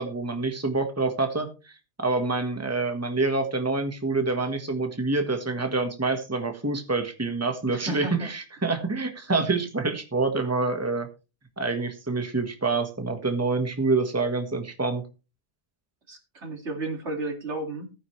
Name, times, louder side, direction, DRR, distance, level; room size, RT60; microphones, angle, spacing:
voice 1, 0.0-1.7 2.0-11.1 11.6-15.0, right 3 dB, 15° right, 6 dB, 1.5 m, -27 dB
voice 2, 7.7-8.3 16.1-17.9, right 2 dB, 85° right, 3 dB, 2.9 m, -33 dB
15.5 x 9.4 x 3.3 m, 0.31 s
omnidirectional pair, 1.1 m